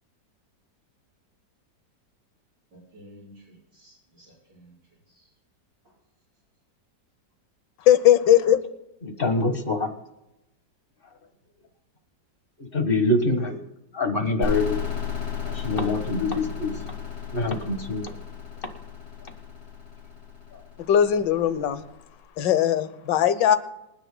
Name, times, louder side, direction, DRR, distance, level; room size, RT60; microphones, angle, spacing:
voice 1, 2.7-4.7 5.1-5.3 5.8-5.9, equal, 75° right, -7 dB, 6.7 m, -52 dB
voice 2, 7.9-8.6 20.9-21.8 22.4-23.6, left 10 dB, 80° left, 12 dB, 1.5 m, -19 dB
voice 3, 9.0-9.9 12.6-13.6 13.9-14.8 15.4-16.8 17.3-18.1 20.5-20.6, left 2 dB, 35° left, 6 dB, 1.4 m, -25 dB
sound 1, 14.4-22.0, left 6 dB, 55° left, 3.3 m, -34 dB
27.5 x 10.0 x 2.2 m, 0.91 s
omnidirectional pair, 1.9 m